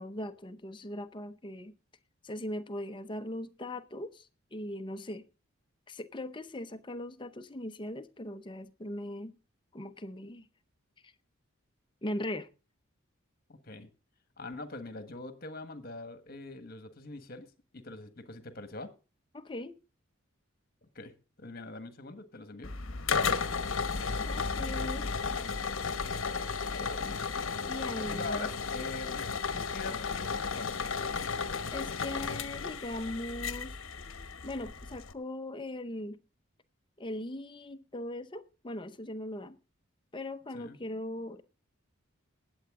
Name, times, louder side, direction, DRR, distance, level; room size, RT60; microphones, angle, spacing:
voice 1, 0.0-1.7 2.2-5.2 5.9-9.3 9.7-10.5 11.0-11.1 12.0-12.5 19.3-19.8 24.3-25.1 27.6-28.5 29.9-30.0 31.7-33.8 34.4-36.2 37.0-39.6 40.1-41.4, left 1 dB, 20° left, 0.7 m, -39 dB
voice 2, 13.5-13.9 14.4-18.9 20.9-21.1 21.4-22.7 26.3-26.4 26.7-27.3 28.0-29.3 29.5-30.3 30.5-30.9 40.5-40.8, left 2 dB, 45° left, 1.4 m, -43 dB
sound 1, 22.6-35.1, left 5 dB, 65° left, 1.0 m, -34 dB
19.5 x 8.0 x 3.7 m
head